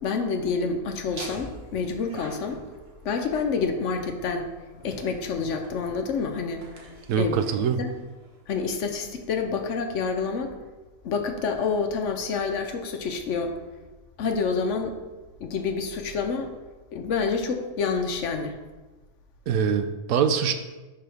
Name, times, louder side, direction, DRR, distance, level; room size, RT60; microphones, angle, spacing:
voice 1, 0.0-2.6 3.0-4.5 4.8-6.7 7.2-7.4 7.8-7.9 8.5-10.5 11.0-13.6 14.2-15.0 15.4-16.5 16.9-18.6, left 5 dB, 65° left, 5 dB, 0.9 m, -28 dB
Laughter, 1.0-8.7, right 1 dB, 50° right, 1.3 m, -46 dB
voice 2, 7.1-7.8 19.5-20.5, right 7 dB, 80° right, 8 dB, 1.0 m, -23 dB
10.5 x 3.8 x 3.4 m, 1.2 s
omnidirectional pair, 1.4 m